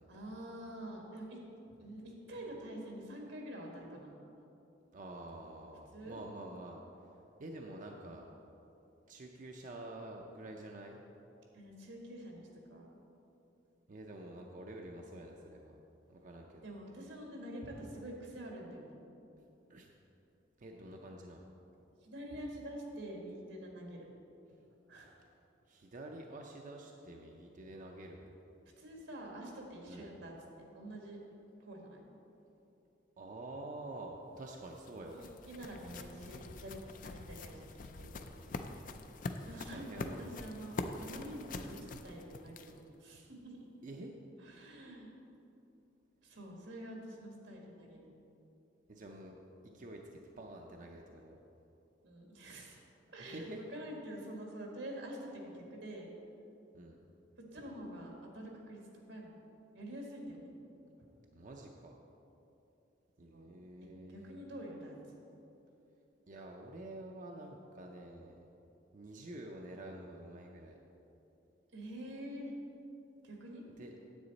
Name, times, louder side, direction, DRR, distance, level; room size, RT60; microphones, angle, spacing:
voice 1, 0.1-1.4 1.8-4.1 5.9-6.2 11.5-12.9 16.6-19.0 22.0-24.1 24.9-25.2 28.8-30.3 30.7-31.2 31.6-32.0 35.0-37.7 38.1-38.2 39.5-43.6 44.4-45.1 46.2-48.1 52.0-52.8 53.1-56.1 57.5-59.4 59.7-60.6 63.3-63.6 63.8-64.9 71.7-72.5 73.2-73.6, right 1 dB, 85° right, -1 dB, 1.7 m, -47 dB
voice 2, 4.9-6.8 7.4-8.3 9.1-11.0 13.9-15.7 16.1-16.7 19.7-19.9 20.6-21.5 25.7-28.3 29.9-30.0 33.2-35.3 39.5-40.3 43.8-44.1 48.9-49.4 49.7-51.4 53.2-53.6 56.7-57.0 61.3-61.9 63.2-64.3 66.3-68.4 68.9-70.7 73.8-73.9, right 1 dB, 45° right, 1 dB, 0.6 m, -48 dB
sound 1, 34.4-43.0, left 3 dB, 45° left, 0.4 m, -45 dB
9.6 x 8.0 x 4.0 m, 2.9 s
head